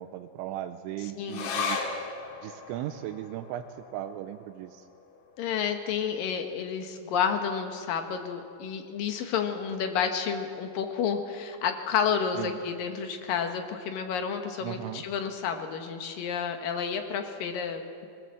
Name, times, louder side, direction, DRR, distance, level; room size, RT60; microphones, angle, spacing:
voice 1, 0.0-1.8 2.4-3.7 3.9-4.8 12.4-12.6 14.6-15.0, right 12 dB, 90° right, 7 dB, 3.1 m, -37 dB
sound 1, 1.3-8.1 8.4-8.5 8.8-9.5 10.1-10.2, left 5 dB, 80° left, 4.6 m, -39 dB
voice 2, 5.4-18.1, left 7 dB, 65° left, 5 dB, 2.6 m, -30 dB
21.0 x 20.0 x 7.7 m, 2.3 s
omnidirectional pair, 5.3 m